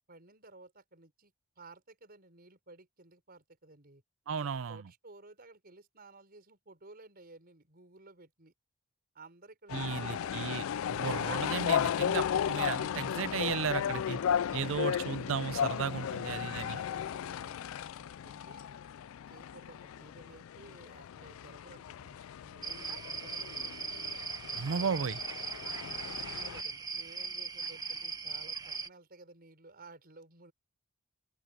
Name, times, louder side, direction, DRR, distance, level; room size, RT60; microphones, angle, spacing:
voice 1, 0.1-4.0 4.4-8.5 9.1-10.5 16.0-18.7 19.3-23.8 24.4-25.0 25.6-30.5, right 2 dB, 45° right, 4.9 m, -55 dB
voice 2, 4.3-4.8 9.7-10.6 10.9-14.2 14.5-16.8 24.6-25.2, right 6 dB, 65° right, 0.5 m, -35 dB
sound 1, 9.7-26.6, left 9 dB, 75° left, 0.3 m, -35 dB
sound 2, 22.6-28.9, right 5 dB, 20° right, 1.3 m, -39 dB
open air
head